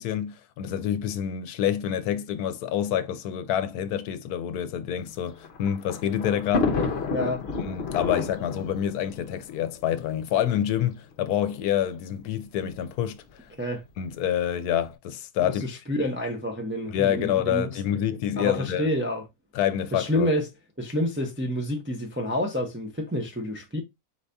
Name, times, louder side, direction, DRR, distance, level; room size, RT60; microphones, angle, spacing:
voice 1, 0.0-6.9 7.6-13.5 14.0-15.7 16.9-18.9 19.5-20.3, left 10 dB, 80° left, 1.1 m, -27 dB
Thunder, 5.1-10.4 11.2-11.3 11.6-11.7 12.7-13.0, left 4 dB, 50° left, 0.9 m, -30 dB
voice 2, 7.1-7.4 13.6-13.8 15.4-18.1 18.4-19.2 19.9-20.5 20.8-23.8, left 1 dB, 15° right, 0.4 m, -28 dB
4.6 x 2.7 x 3.4 m
omnidirectional pair, 1.6 m